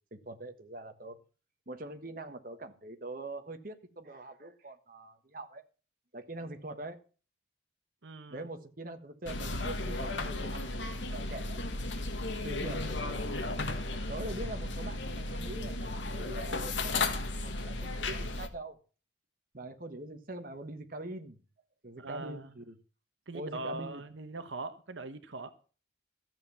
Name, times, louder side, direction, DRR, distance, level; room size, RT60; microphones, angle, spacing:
voice 1, 0.1-1.2 1.7-5.6 6.1-7.0 8.3-11.6 12.4-13.4 14.1-18.8 19.5-21.4 21.8-22.8 23.3-24.0, right 2 dB, 45° right, 1.4 m, -43 dB
voice 2, 8.0-8.5 22.0-22.5 23.3-25.5, right 2 dB, 85° right, 1.1 m, -41 dB
sound 1, 9.3-18.5, left 2 dB, 75° left, 1.7 m, -34 dB
13.5 x 7.5 x 7.1 m
head